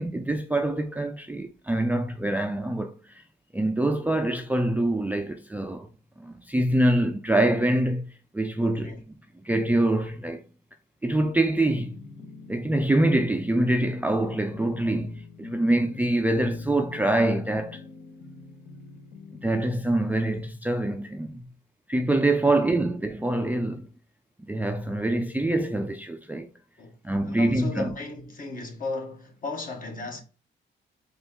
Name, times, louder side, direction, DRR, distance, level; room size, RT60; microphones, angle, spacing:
voice 1, 0.0-3.0 3.5-5.9 6.2-8.0 8.3-8.9 9.4-10.4 11.0-12.0 12.5-17.8 19.4-21.4 21.9-23.9 24.5-26.5 27.0-27.9, right 1 dB, 10° right, 0.4 m, -25 dB
voice 2, 8.6-9.0 22.4-22.8 26.8-27.0 27.2-30.2, left 3 dB, 45° left, 1.3 m, -36 dB
sound 1, 11.5-20.2, left 5 dB, 60° left, 1.1 m, -46 dB
4.0 x 3.2 x 3.6 m
cardioid pair, 90°, 20 cm